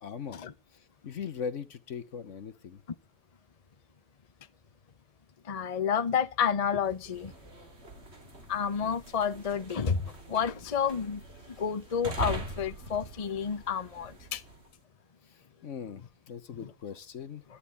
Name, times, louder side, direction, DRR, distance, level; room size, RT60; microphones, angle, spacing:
voice 1, 0.0-0.4 0.7-2.8 15.2-17.4, left 7 dB, 60° left, 1.3 m, -40 dB
voice 2, 5.4-7.3 8.5-11.2 11.6-14.4, left 7 dB, 35° left, 0.8 m, -30 dB
sound 1, 6.9-14.7, right 2 dB, 50° right, 3.1 m, -42 dB
11.5 x 10.0 x 8.5 m
omnidirectional pair, 1.5 m